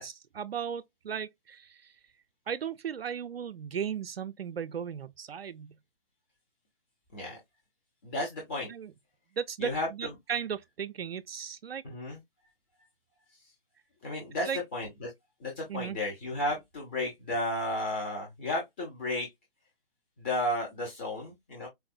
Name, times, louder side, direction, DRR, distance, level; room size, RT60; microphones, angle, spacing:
voice 1, 0.0-1.9 2.5-5.7 8.7-8.9 9.4-11.8 14.4-14.6 15.7-16.0, right 7 dB, 80° right, 0.4 m, -36 dB
voice 2, 8.0-8.7 9.6-10.1 11.8-12.2 14.0-15.1 15.4-19.3 20.2-21.7, left 1 dB, 10° left, 0.4 m, -33 dB
4.3 x 2.0 x 2.4 m
figure-of-eight pair, 135°, 30 cm